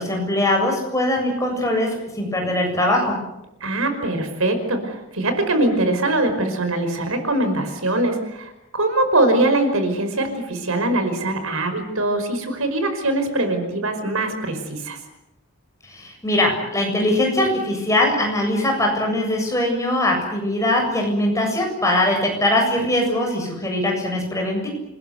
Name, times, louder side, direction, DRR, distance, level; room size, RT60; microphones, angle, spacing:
voice 1, 0.0-3.2 15.9-24.7, left 1 dB, 15° left, 1 dB, 7.5 m, -21 dB
voice 2, 3.6-15.0, right 2 dB, 80° right, 7 dB, 5.3 m, -22 dB
28.0 x 21.0 x 8.1 m, 0.90 s
head